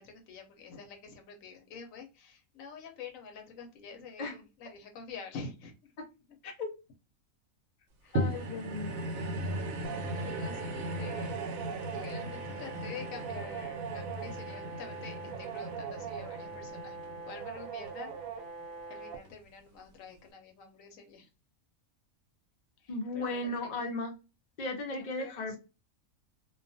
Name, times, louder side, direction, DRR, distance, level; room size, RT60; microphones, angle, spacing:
voice 1, 0.0-5.9 8.0-8.6 10.2-11.3 11.9-17.0 17.2-18.2 18.9-21.3 22.8-23.8 24.9-25.6, left 5 dB, 75° left, 1.0 m, -47 dB
voice 2, 8.1-8.9 22.9-24.1 24.6-25.6, left 2 dB, 45° left, 0.6 m, -36 dB
sound 1, 8.2-18.6 19.3-19.4, right 1 dB, 80° right, 1.0 m, -38 dB
sound 2, 9.8-19.2, right 6 dB, 60° right, 0.6 m, -41 dB
2.4 x 2.2 x 2.6 m
omnidirectional pair, 1.4 m